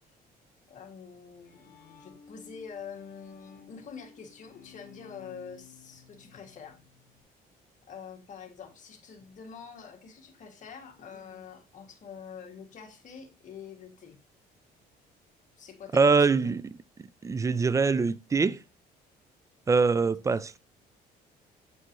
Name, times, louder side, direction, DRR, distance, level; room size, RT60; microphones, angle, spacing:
voice 1, 0.7-6.8 7.9-14.2 15.6-16.6 17.6-17.9 19.9-20.1, left 6 dB, 50° left, 1.8 m, -46 dB
Bowed string instrument, 1.1-7.2, left 6 dB, 65° left, 2.0 m, -55 dB
voice 2, 15.9-16.6 17.2-18.6 19.7-20.6, right 4 dB, 20° right, 0.3 m, -23 dB
8.0 x 4.4 x 3.0 m
cardioid pair, 110°, 17 cm